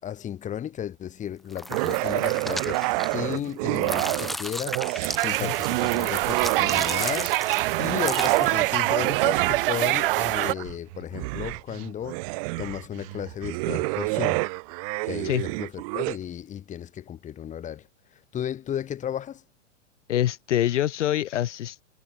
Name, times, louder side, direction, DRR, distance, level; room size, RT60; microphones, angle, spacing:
voice 1, 0.0-7.3 7.8-12.2 12.6-14.4 15.0-19.4, left 10 dB, 20° left, 7.0 m, -34 dB
sound 1, 1.5-3.4 3.8-8.7, left 1 dB, ahead, 0.3 m, -36 dB
sound 2, 1.7-4.4 4.7-7.0 7.6-16.2, right 29 dB, 30° right, 0.7 m, -29 dB
sound 3, 5.2-10.5, right 18 dB, 45° right, 1.0 m, -25 dB
voice 2, 20.1-21.8, left 12 dB, 65° left, 1.5 m, -25 dB
hypercardioid pair, 145°, 38 cm